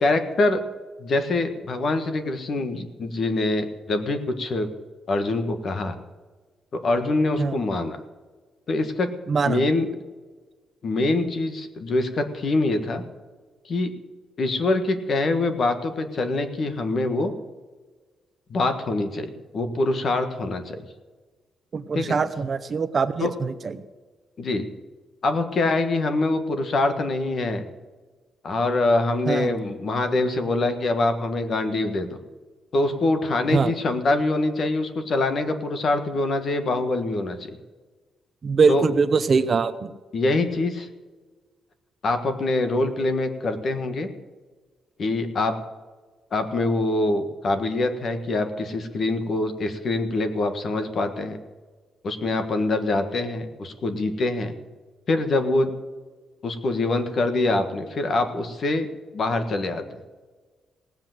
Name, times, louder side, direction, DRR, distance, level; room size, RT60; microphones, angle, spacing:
voice 1, 0.0-0.6 1.0-4.7 5.1-5.9 6.7-8.0 8.7-9.1 9.4-9.9 10.8-13.0 13.6-13.9 14.4-17.3 18.5-20.8 21.9-22.2 23.2-23.3 24.4-24.7 25.2-27.6 28.4-32.1 32.7-37.5 38.7-38.9 40.1-40.9 42.0-44.1 45.0-45.6 46.3-51.4 52.0-54.5 55.1-55.7 56.4-58.9 59.1-60.0, left 2 dB, 40° left, 7 dB, 1.5 m, -24 dB
voice 2, 9.3-9.6 21.7-23.8 29.3-29.5 33.5-33.7 38.4-39.9, right 5 dB, 35° right, 11 dB, 0.6 m, -22 dB
17.5 x 8.0 x 7.7 m, 1.4 s
wide cardioid pair, 170°, 0 cm